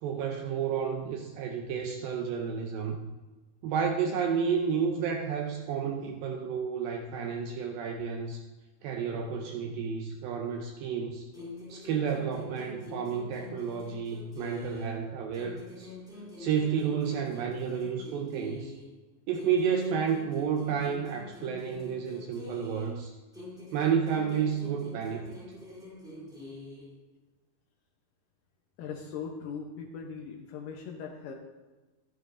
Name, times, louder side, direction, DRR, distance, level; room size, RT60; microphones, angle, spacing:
voice 1, 0.0-3.1 3.6-8.4 8.8-11.3 11.7-15.9 16.4-18.7 19.3-23.1 23.7-25.4, right 7 dB, 80° right, 4 dB, 2.2 m, -31 dB
sound 1, 11.3-15.0 15.3-19.0 19.3-23.0 23.3-27.0, left 2 dB, ahead, 1.9 m, -45 dB
voice 2, 28.8-31.3, left 6 dB, 75° left, 2 dB, 2.1 m, -39 dB
14.0 x 10.5 x 2.6 m, 1.2 s
omnidirectional pair, 4.5 m